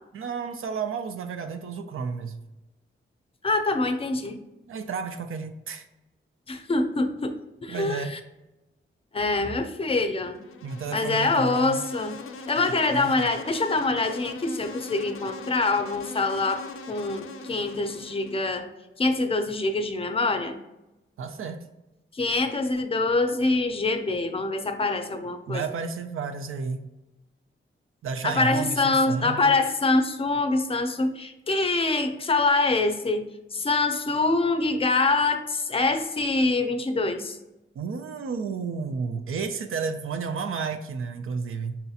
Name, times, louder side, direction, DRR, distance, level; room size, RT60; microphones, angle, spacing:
voice 1, 0.1-2.4 4.7-5.8 7.7-8.1 10.6-11.8 12.9-13.3 21.2-21.6 25.5-26.8 28.0-29.5 37.8-41.8, right 5 dB, 85° right, 8 dB, 0.5 m, -32 dB
voice 2, 3.4-4.4 6.5-7.3 7.6-8.2 9.1-10.4 10.9-12.2 12.5-18.7 19.0-20.6 22.1-25.6 28.2-33.3 33.5-37.4, left 3 dB, 25° left, 7 dB, 0.5 m, -25 dB
Insect, 10.4-18.6, left 4 dB, 85° left, 0.4 m, -41 dB
5.5 x 2.8 x 2.4 m, 0.97 s
wide cardioid pair, 90°, 21 cm